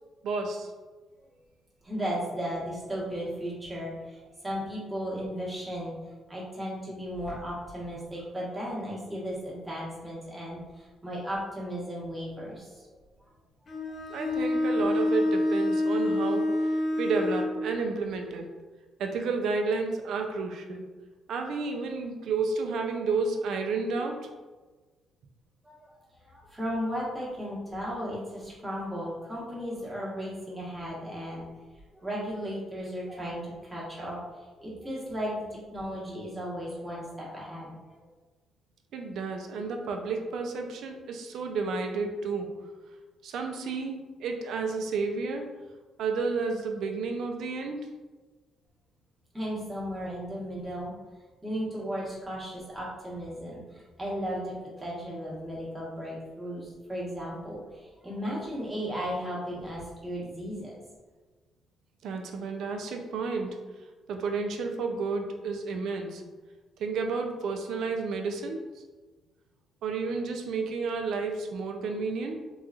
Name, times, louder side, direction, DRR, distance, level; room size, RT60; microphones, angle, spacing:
voice 1, 0.2-0.7 14.1-16.5 17.0-18.5 19.0-20.8 21.3-24.2 38.9-42.5 43.2-45.5 46.0-47.8 62.0-63.6 64.1-66.2 66.8-68.6 69.8-72.4, right 4 dB, 75° right, 4 dB, 0.4 m, -31 dB
voice 2, 1.8-4.2 4.4-6.0 6.3-12.9 25.6-25.9 26.2-31.5 31.9-34.2 34.6-37.7 49.3-50.9 51.4-60.8, equal, 15° right, -6 dB, 1.1 m, -35 dB
Bowed string instrument, 13.7-17.6, left 1 dB, 40° left, 0.5 m, -27 dB
2.9 x 2.3 x 2.3 m, 1.3 s
cardioid pair, 90°, 0 cm